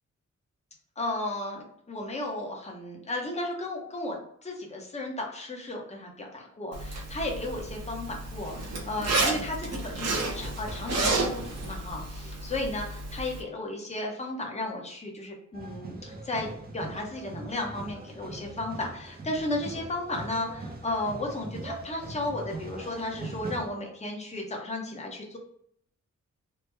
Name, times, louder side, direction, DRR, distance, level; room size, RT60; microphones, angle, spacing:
voice 1, 1.0-25.4, left 2 dB, 20° left, 0 dB, 0.7 m, -34 dB
Zipper (clothing), 6.7-13.4, right 2 dB, 55° right, 0.8 m, -31 dB
sound 1, 15.5-23.7, right 2 dB, 30° right, 0.5 m, -41 dB
3.3 x 2.1 x 3.2 m, 0.67 s
wide cardioid pair, 115°, 30 cm